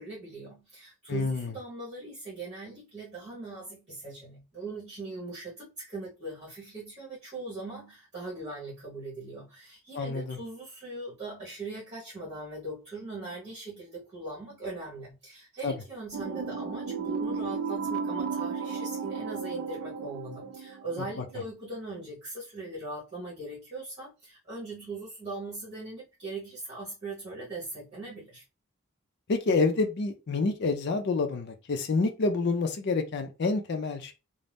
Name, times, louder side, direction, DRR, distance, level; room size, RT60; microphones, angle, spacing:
voice 1, 0.0-28.4, right 2 dB, 30° right, 1.1 m, -40 dB
voice 2, 1.1-1.5 10.0-10.4 15.6-15.7 29.3-34.1, left 3 dB, 50° left, 0.4 m, -28 dB
sound 1, 16.1-21.4, right 5 dB, 70° right, 0.3 m, -34 dB
2.6 x 2.0 x 3.3 m
head